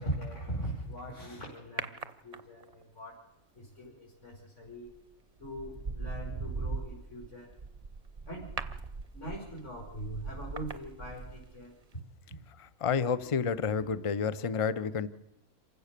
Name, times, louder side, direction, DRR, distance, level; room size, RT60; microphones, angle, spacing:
voice 1, 0.0-3.2 3.5-4.9 5.4-7.5 8.2-8.8 9.1-11.7, right 1 dB, 50° left, -4 dB, 5.6 m, -41 dB
sound 1, 1.8-2.8 4.7-5.0 5.4-11.6 11.9-12.0, right 4 dB, 30° right, 0.8 m, -40 dB
voice 2, 12.8-15.1, left 6 dB, 30° left, 14 dB, 0.6 m, -29 dB
27.5 x 16.0 x 6.7 m, 0.89 s
omnidirectional pair, 1.6 m